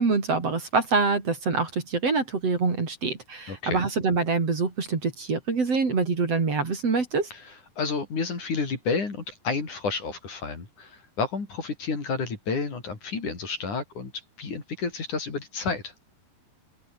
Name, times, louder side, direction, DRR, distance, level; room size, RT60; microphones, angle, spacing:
voice 1, 0.0-7.3, right 4 dB, 45° right, 4.7 m, -25 dB
voice 2, 3.5-3.8 7.3-14.1 14.4-15.9, left 4 dB, 55° left, 6.3 m, -30 dB
open air
omnidirectional pair, 4.2 m